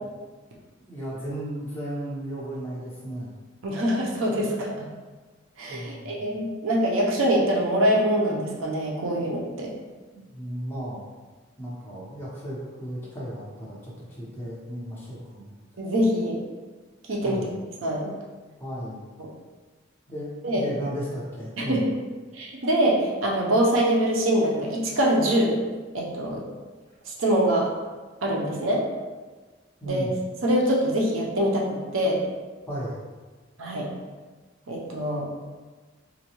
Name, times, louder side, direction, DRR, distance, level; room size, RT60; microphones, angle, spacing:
voice 1, 0.9-3.4 5.7-6.1 10.1-11.0 11.6-15.6 17.2-17.5 18.6-19.0 20.1-21.8 29.8-30.1 32.7-33.0, equal, 10° left, -7 dB, 0.8 m, -35 dB
voice 2, 3.6-4.9 5.6-9.7 15.8-16.4 17.1-17.4 17.8-18.1 20.4-20.7 21.6-21.8 22.3-25.6 25.9-26.4 27.1-27.7 28.2-28.8 29.9-30.1 30.4-32.2 33.6-33.9 34.7-35.3, right 1 dB, 90° right, -2 dB, 0.7 m, -24 dB
3.9 x 2.2 x 3.0 m, 1.3 s
head